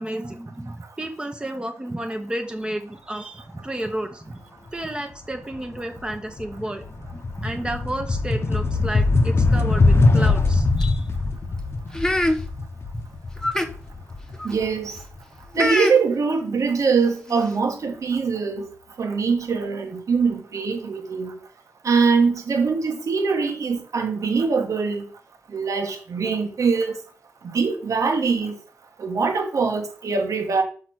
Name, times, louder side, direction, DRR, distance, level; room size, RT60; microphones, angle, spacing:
voice 1, 0.0-4.4 4.7-11.4, right 1 dB, 15° right, 5 dB, 1.0 m, -32 dB
sound 1, 5.5-5.8 6.1-15.0, left 3 dB, 55° left, 0.8 m, -22 dB
sound 2, 10.5-11.1 11.9-12.4 12.9-13.0 13.4-13.7 14.3-14.6 15.5-15.9 16.9-17.0 17.3-17.5, left 1 dB, 10° left, 1.0 m, -24 dB
voice 2, 14.4-14.9 15.6-18.6 19.0-21.3 21.8-25.0 25.5-26.9 27.4-28.6 29.0-30.6, right 5 dB, 90° right, 4 dB, 1.7 m, -23 dB
6.0 x 5.6 x 6.3 m, 0.41 s
wide cardioid pair, 120°, 5 cm